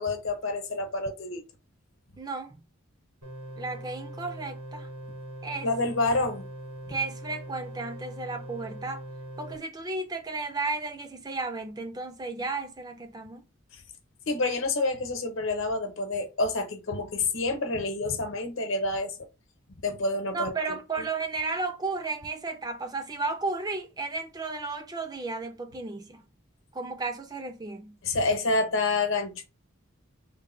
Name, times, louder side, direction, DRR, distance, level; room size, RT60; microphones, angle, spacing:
voice 1, 0.0-1.4 5.6-6.5 14.3-19.1 19.8-20.5 28.0-29.4, left 3 dB, 70° left, 0.9 m, -28 dB
voice 2, 2.2-2.6 3.6-4.9 5.4-5.7 6.9-9.0 9.4-13.4 20.3-26.2 26.7-28.0, right 3 dB, 20° right, 0.3 m, -33 dB
sound 1, 3.2-9.6, right 1 dB, 80° right, 1.8 m, -41 dB
3.2 x 2.1 x 4.3 m
head